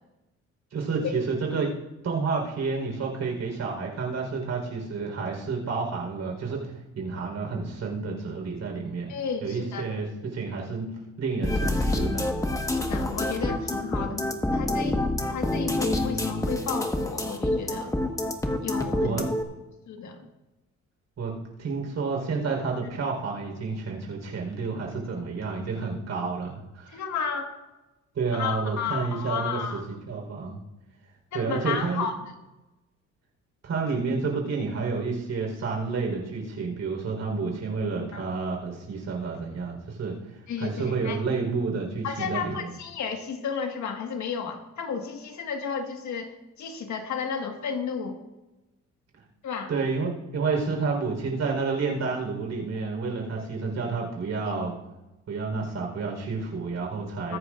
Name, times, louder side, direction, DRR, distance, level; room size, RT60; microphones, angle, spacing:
voice 1, 0.7-1.7 2.0-9.1 9.4-10.9 11.2-12.3 19.0-19.3 21.2-27.0 28.1-29.6 29.9-30.6 31.3-32.1 33.6-40.2 40.6-42.7 49.7-54.7 55.3-57.4, right 4 dB, 60° right, 0 dB, 4.2 m, -30 dB
voice 2, 9.1-9.9 12.7-17.9 18.6-19.2 19.9-20.3 26.9-27.5 28.3-29.8 31.3-32.1 38.1-38.2 40.5-41.2 42.0-48.2 49.4-49.7 54.4-54.5 57.3-57.4, left 6 dB, 70° left, 4 dB, 1.6 m, -33 dB
sound 1, 11.4-19.4, left 1 dB, 10° left, 1.4 m, -27 dB
22.0 x 10.0 x 2.5 m, 1.0 s
cardioid pair, 90°, 30 cm